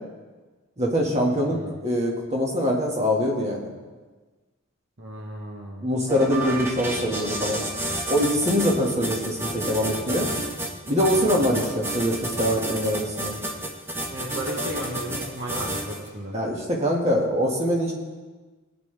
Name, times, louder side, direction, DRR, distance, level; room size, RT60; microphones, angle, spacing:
voice 1, 0.8-3.7 5.8-7.6 8.1-10.3 10.9-13.3 16.3-17.9, equal, 30° right, -1 dB, 2.0 m, -23 dB
voice 2, 5.0-5.9 11.3-11.5 14.1-16.4, right 1 dB, 55° right, -1 dB, 1.3 m, -34 dB
sound 1, 6.1-16.1, right 1 dB, 10° right, 1.2 m, -30 dB
18.5 x 9.5 x 3.5 m, 1.3 s
head